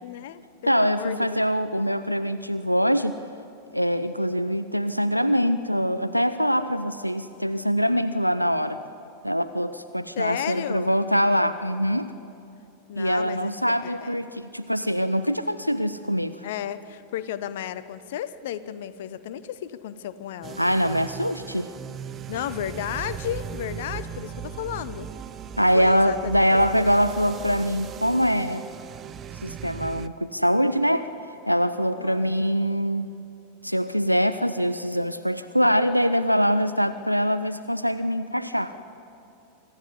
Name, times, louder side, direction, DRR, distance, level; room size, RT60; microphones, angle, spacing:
voice 1, 0.0-1.4 10.2-10.9 12.9-14.2 16.4-20.6 22.3-25.1 25.7-26.5 26.7-26.9 32.0-32.3, left 11 dB, 55° left, 14 dB, 0.8 m, -33 dB
voice 2, 0.6-3.2 3.7-8.8 9.2-12.1 13.0-16.4 20.6-21.7 25.6-28.6 29.4-31.1 31.5-33.1 33.6-38.7, equal, 90° left, 12 dB, 0.5 m, -23 dB
sound 1, 20.4-30.1, right 8 dB, 25° right, 0.6 m, -38 dB
25.0 x 13.5 x 9.8 m, 2.7 s
figure-of-eight pair, 90°, 0 cm